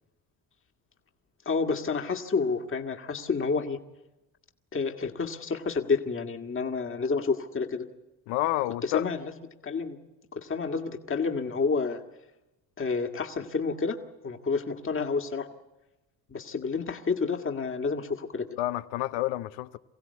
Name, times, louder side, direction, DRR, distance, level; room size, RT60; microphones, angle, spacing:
voice 1, 1.4-3.8 4.7-7.8 8.8-9.3 9.6-10.0 10.3-12.0 12.8-14.0 14.2-15.5 16.3-18.5, left 4 dB, 25° left, 1.7 m, -29 dB
voice 2, 8.3-9.1 18.6-19.8, left 15 dB, 75° left, 0.9 m, -29 dB
24.0 x 16.0 x 9.5 m
supercardioid pair, 70°, 46 cm